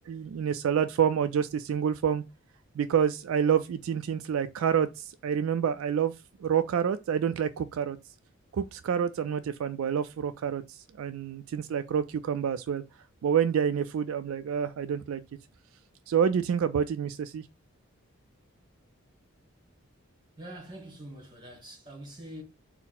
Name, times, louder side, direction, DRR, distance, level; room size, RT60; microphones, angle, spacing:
voice 1, 0.1-2.2 2.7-6.1 6.4-8.0 8.5-12.8 13.2-15.2 16.1-17.4, right 8 dB, 75° right, 0.3 m, -28 dB
voice 2, 20.4-22.4, right 1 dB, 20° right, 1.1 m, -44 dB
4.2 x 2.0 x 3.9 m
head